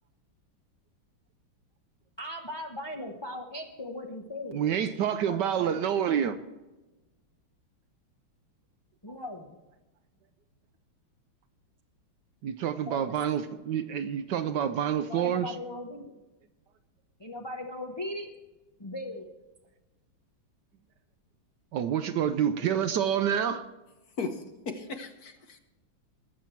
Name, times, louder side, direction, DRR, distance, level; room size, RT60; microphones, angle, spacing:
voice 1, 2.2-4.7 5.2-5.7 9.0-9.6 12.9-13.1 15.1-16.1 17.2-18.3 18.8-19.3, left 1 dB, 35° left, 1 dB, 0.4 m, -38 dB
voice 2, 4.5-6.4 12.4-15.6 21.7-23.7, right 9 dB, 70° right, 10 dB, 1.1 m, -28 dB
voice 3, 24.2-25.6, left 4 dB, 55° left, 7 dB, 1.3 m, -37 dB
20.5 x 7.6 x 4.5 m, 1.1 s
omnidirectional pair, 2.2 m